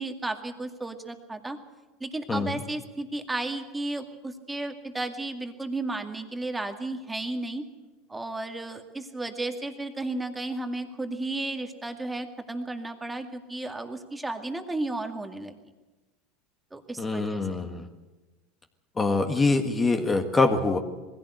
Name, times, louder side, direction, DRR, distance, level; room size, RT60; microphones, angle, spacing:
voice 1, 0.0-1.6 2.0-7.6 8.1-15.6 16.7-17.7, right 2 dB, 10° right, 5 dB, 2.2 m, -33 dB
voice 2, 17.0-17.9 19.0-20.8, left 3 dB, 20° left, 5 dB, 1.7 m, -24 dB
20.5 x 16.0 x 8.0 m, 1.2 s
supercardioid pair, 100°, 0 cm